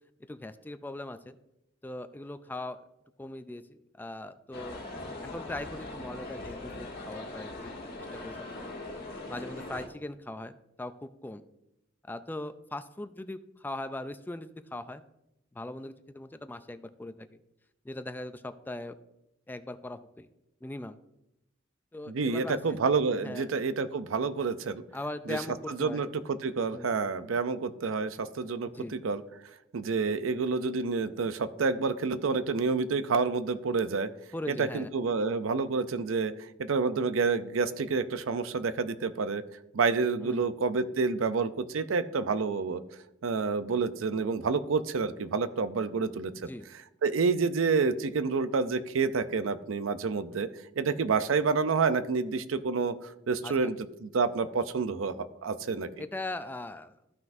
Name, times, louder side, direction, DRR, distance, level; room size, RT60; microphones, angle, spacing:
voice 1, 0.3-1.4 1.8-2.8 3.2-4.8 5.2-7.7 8.1-8.7 9.3-11.4 12.1-15.0 15.5-17.3 17.8-19.0 19.5-20.3 20.6-21.0 21.9-22.8 23.2-23.5 24.9-26.0 26.7-26.9 28.7-29.0 34.3-34.9 40.2-40.5 46.5-46.7 50.3-50.5 53.4-53.7 56.0-56.9, left 2 dB, 10° left, 11 dB, 0.3 m, -40 dB
sound 1, 4.5-9.9, left 2 dB, 50° left, 1.5 m, -41 dB
voice 2, 22.1-24.8 25.3-25.4 25.7-29.2 29.7-34.1 34.5-39.4 39.7-42.8 43.2-46.3 47.0-50.5 50.8-52.9 53.3-55.9, right 4 dB, 85° right, 13 dB, 0.5 m, -28 dB
14.0 x 5.8 x 2.6 m, 0.87 s
head